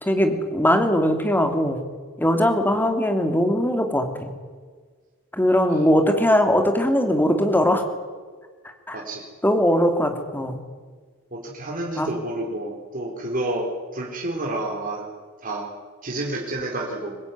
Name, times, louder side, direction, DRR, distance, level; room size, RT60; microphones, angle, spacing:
voice 1, 0.0-1.8 2.2-4.3 5.3-7.8 8.9-9.0 9.4-10.6 12.0-12.1, equal, 10° left, 6 dB, 2.8 m, -20 dB
voice 2, 8.9-9.3 11.3-15.1 15.4-15.7 16.0-17.2, right 1 dB, 40° right, -1 dB, 4.0 m, -30 dB
24.0 x 20.5 x 9.6 m, 1.5 s
head